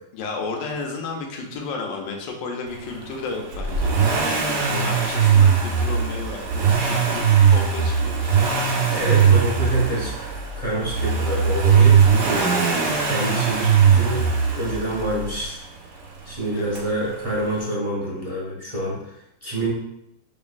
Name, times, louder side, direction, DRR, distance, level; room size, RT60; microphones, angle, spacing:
voice 1, 0.1-4.0 4.2-6.4 6.8-7.2 7.5-8.4 16.5-16.8, left 4 dB, 90° left, 2 dB, 1.3 m, -32 dB
Accelerating revving vroom, 3.5-15.4 16.7-16.8, right 6 dB, 65° right, 0.7 m, -19 dB
voice 2, 8.9-15.7 16.2-19.7, right 1 dB, 10° left, -6 dB, 0.8 m, -27 dB
5.2 x 2.5 x 2.3 m, 0.81 s
omnidirectional pair, 2.0 m